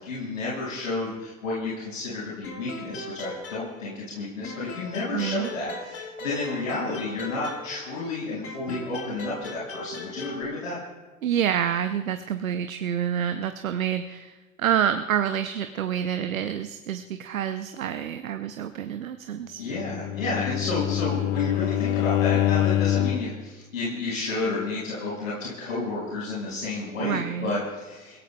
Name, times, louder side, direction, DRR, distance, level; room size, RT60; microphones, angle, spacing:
voice 1, 0.0-10.8 19.6-28.2, left 3 dB, 80° left, -7 dB, 5.4 m, -31 dB
sound 1, 2.4-4.1 4.4-8.1 8.4-10.4, left 2 dB, 35° left, 3.3 m, -39 dB
voice 2, 5.1-5.5 11.2-19.6 27.0-27.6, right 9 dB, 85° right, 9 dB, 0.7 m, -28 dB
Bowed string instrument, 19.7-23.4, left 13 dB, 60° left, 0.9 m, -25 dB
29.5 x 17.0 x 2.3 m, 1.2 s
figure-of-eight pair, 75°, 40 cm